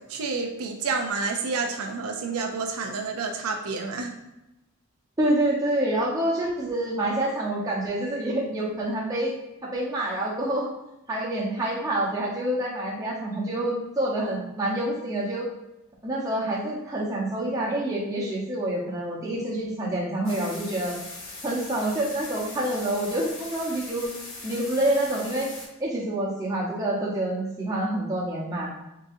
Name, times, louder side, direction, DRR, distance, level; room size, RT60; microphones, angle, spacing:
voice 1, 0.1-4.2, right 4 dB, 90° right, 4 dB, 0.6 m, -29 dB
voice 2, 5.2-9.3 9.7-10.7 11.1-15.5 16.0-21.0 21.4-24.1 24.4-25.5 25.8-28.7, right 1 dB, 15° right, -5 dB, 0.9 m, -27 dB
sound 1, 20.2-25.7, left 2 dB, 65° left, 1.0 m, -40 dB
4.0 x 3.7 x 2.6 m, 0.92 s
head